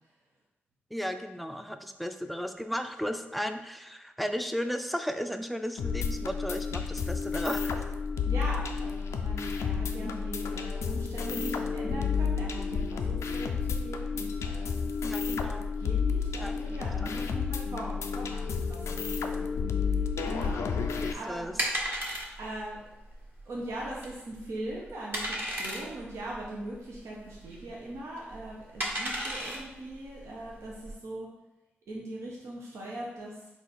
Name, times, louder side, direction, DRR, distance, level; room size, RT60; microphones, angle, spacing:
voice 1, 0.9-7.8 10.0-10.2 15.0-15.6 16.4-17.2 20.9-21.6, equal, ahead, 7 dB, 0.4 m, -35 dB
sound 1, 5.8-21.1, left 5 dB, 80° left, 0.3 m, -31 dB
voice 2, 8.3-19.0 19.9-20.6 21.1-21.5 22.4-22.8 23.5-31.3 31.9-33.4, right 1 dB, 80° right, -4 dB, 0.7 m, -40 dB
sound 2, 20.3-30.9, right 1 dB, 45° right, 1.2 m, -36 dB
4.0 x 2.4 x 4.1 m, 0.99 s
supercardioid pair, 40°, 5 cm